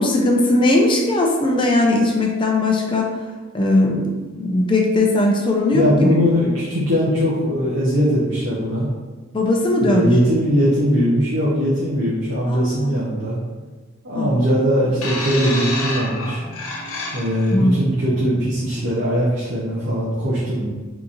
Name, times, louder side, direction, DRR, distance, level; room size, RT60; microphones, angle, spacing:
voice 1, 0.0-3.2 3.5-4.1 4.3-6.1 9.3-10.1 12.5-13.0 14.1-14.3 17.5-17.8, left 2 dB, 25° left, 0 dB, 0.4 m, -18 dB
voice 2, 5.7-8.9 9.8-13.4 14.0-16.4 17.1-20.7, equal, 55° right, -7 dB, 0.7 m, -20 dB
sound 1, 15.0-17.6 18.5-18.6, left 2 dB, 80° left, 0.7 m, -28 dB
3.8 x 2.9 x 2.4 m, 1.3 s
head